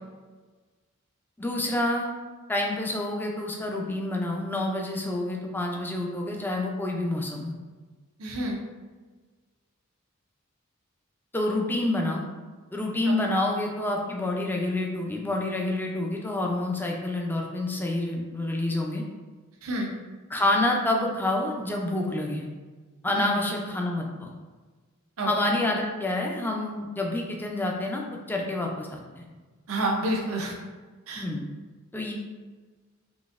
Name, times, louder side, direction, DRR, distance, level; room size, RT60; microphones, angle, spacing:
voice 1, 1.4-2.1 2.5-7.5 11.3-12.3 12.7-19.0 20.3-22.5 23.0-24.3 25.3-29.3 31.2-31.5 31.9-32.1, left 1 dB, 10° left, 0 dB, 0.4 m, -28 dB
voice 2, 8.2-8.6 13.1-13.4 19.6-19.9 23.2-23.4 25.2-25.3 29.7-30.5 31.1-31.2, right 1 dB, 85° right, 0 dB, 0.7 m, -29 dB
3.9 x 2.6 x 2.5 m, 1.3 s
head